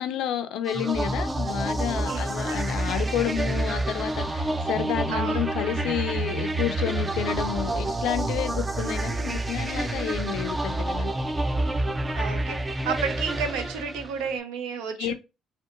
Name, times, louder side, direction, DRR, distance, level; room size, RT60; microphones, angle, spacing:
voice 1, 0.0-11.1 15.0-15.1, left 10 dB, 75° left, 0.3 m, -30 dB
sound 1, 0.7-14.3, right 2 dB, 20° right, 0.4 m, -28 dB
voice 2, 2.0-2.6 5.1-5.4 12.1-15.1, right 6 dB, 90° right, 0.5 m, -32 dB
2.8 x 2.1 x 2.5 m
supercardioid pair, 70°, 0 cm